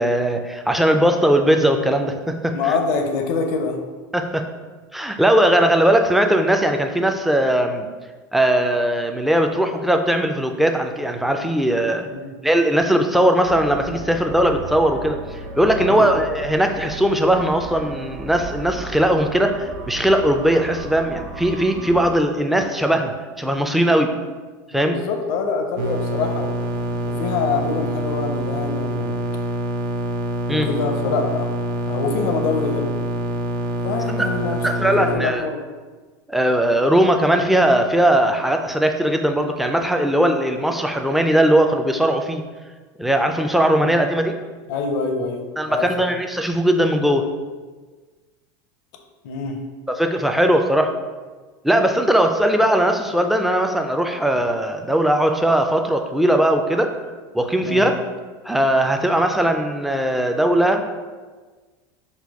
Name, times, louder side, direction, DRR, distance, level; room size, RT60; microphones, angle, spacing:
voice 1, 0.0-2.7 4.1-4.4 4.9-7.9 8.3-12.1 12.4-15.2 15.6-24.1 24.7-25.0 30.5-30.7 34.2-34.3 34.6-35.5 36.3-42.4 43.0-44.3 45.6-47.2 49.9-50.9 51.6-56.9 57.3-58.0 58.5-60.9, right 1 dB, ahead, 4 dB, 0.3 m, -19 dB
voice 2, 2.5-3.8 12.1-12.2 15.8-16.1 24.7-26.5 27.1-29.2 30.5-31.5 31.9-32.9 33.8-35.6 43.8-43.9 44.7-45.9 49.2-49.6 57.6-57.9, left 4 dB, 70° left, 4 dB, 0.6 m, -25 dB
sound 1, 13.4-22.2, right 3 dB, 45° right, 1.1 m, -35 dB
sound 2, 25.8-35.2, right 1 dB, 85° right, 0.6 m, -26 dB
4.0 x 2.2 x 4.6 m, 1.4 s
supercardioid pair, 125°, 11 cm